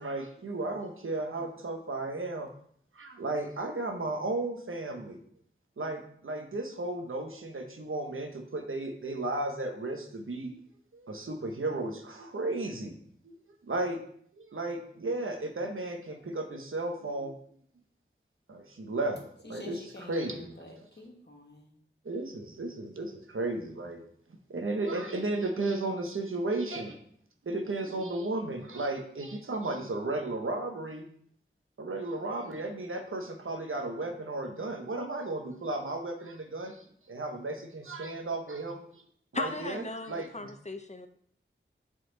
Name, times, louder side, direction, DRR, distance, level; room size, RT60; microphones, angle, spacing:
voice 1, 0.0-2.5 2.9-5.2 5.8-10.6 10.9-12.9 13.2-13.3 13.6-14.0 14.4-17.4 18.5-19.8 20.1-20.6 22.0-24.0 24.5-27.0 27.4-31.1 31.8-39.0 39.3-40.5, right 2 dB, 85° right, 4 dB, 1.0 m, -34 dB
voice 2, 19.4-21.7, left 2 dB, 55° left, 0 dB, 1.5 m, -48 dB
voice 3, 39.3-41.1, left 2 dB, 35° left, 8 dB, 0.6 m, -36 dB
7.7 x 4.2 x 3.9 m, 0.64 s
wide cardioid pair, 65°, 21 cm